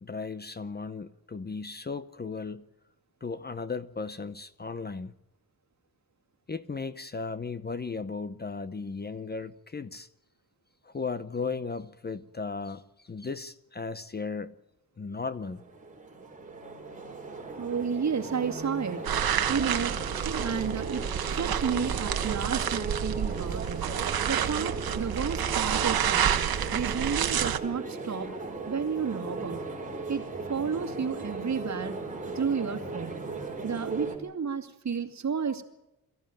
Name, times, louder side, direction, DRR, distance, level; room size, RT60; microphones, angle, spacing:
voice 1, 0.0-2.7 3.2-5.1 6.5-10.1 10.8-14.5 15.0-15.6, left 4 dB, 30° left, 0.8 m, -36 dB
sound 1, 15.4-34.2, right 3 dB, 20° right, 4.1 m, -37 dB
voice 2, 17.6-19.1 19.5-20.0 20.2-21.1 21.3-24.0 24.3-26.3 26.7-28.3 28.7-29.7 30.1-31.9 32.4-33.2 33.6-35.6, right 6 dB, 50° right, 2.2 m, -31 dB
sound 2, 19.0-27.6, right 9 dB, 85° right, 1.2 m, -29 dB
23.0 x 14.5 x 9.1 m
wide cardioid pair, 135°, 35 cm